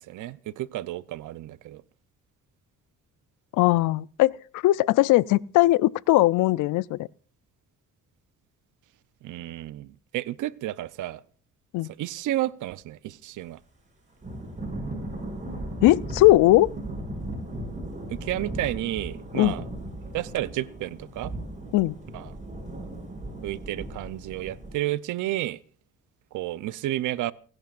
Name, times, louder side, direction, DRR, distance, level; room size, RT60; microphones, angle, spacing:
voice 1, 0.0-1.8 9.2-11.2 12.0-13.6 18.1-19.6 20.1-21.3 22.1-22.3 23.4-25.6 26.3-27.3, right 14 dB, 80° right, 0.7 m, -31 dB
voice 2, 3.6-7.1 11.7-11.9 15.8-16.7 19.3-19.6 21.7-21.9, left 17 dB, 85° left, 0.5 m, -20 dB
Thunder / Rain, 14.2-24.7, right 1 dB, 25° right, 7.0 m, -37 dB
29.5 x 11.0 x 2.5 m
cardioid pair, 90°, 30 cm